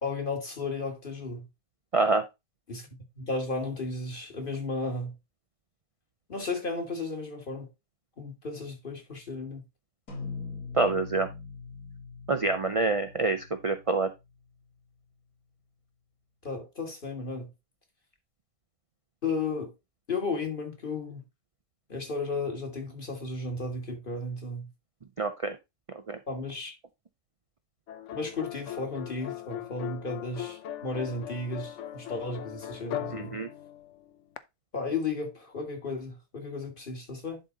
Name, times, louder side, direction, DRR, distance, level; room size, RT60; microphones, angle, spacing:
voice 1, 0.0-1.4 2.7-2.9 3.2-5.1 6.3-7.7 8.2-9.6 16.4-17.5 19.2-19.7 20.1-21.2 21.9-24.7 26.3-26.7 28.1-33.4 34.7-37.4, left 3 dB, 35° left, 1.9 m, -34 dB
voice 2, 1.9-2.2 10.7-11.3 12.3-14.1 25.2-25.6 26.1-26.2 33.1-33.5, right 3 dB, 55° right, 0.3 m, -26 dB
sound 1, 10.1-14.7, left 4 dB, 80° left, 3.7 m, -42 dB
sound 2, 27.9-34.4, left 12 dB, 60° left, 0.9 m, -39 dB
11.0 x 3.9 x 3.9 m
omnidirectional pair, 1.6 m